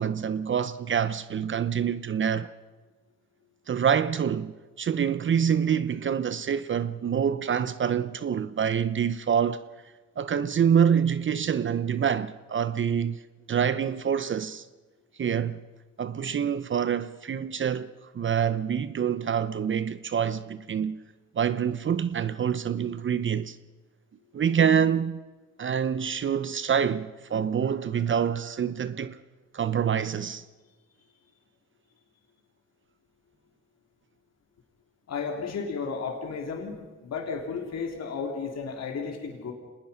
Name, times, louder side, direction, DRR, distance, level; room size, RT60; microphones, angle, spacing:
voice 1, 0.0-2.5 3.7-9.6 10.2-13.2 13.5-14.7 15.2-15.6 16.0-21.0 21.3-23.6 24.3-25.2 25.6-29.2 29.5-30.4, right 8 dB, 40° right, 0.7 m, -26 dB
voice 2, 35.1-36.7 37.0-39.5, left 5 dB, 60° left, 3.6 m, -33 dB
26.0 x 19.5 x 5.8 m
cardioid pair, 90°, 30 cm